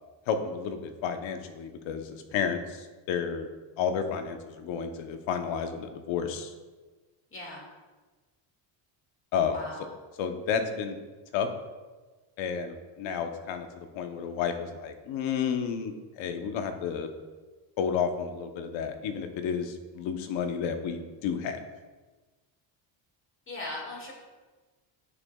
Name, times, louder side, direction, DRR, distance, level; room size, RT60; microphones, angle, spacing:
voice 1, 0.3-3.5 3.8-6.5 9.3-9.6 10.2-11.0 11.3-11.5 12.4-17.1 17.8-21.6, left 7 dB, 75° left, 7 dB, 0.9 m, -31 dB
voice 2, 7.3-7.6 9.5-9.8 23.5-24.1, left 2 dB, 25° left, -2 dB, 2.2 m, -38 dB
9.5 x 6.3 x 2.3 m, 1.3 s
cardioid pair, 135°, 46 cm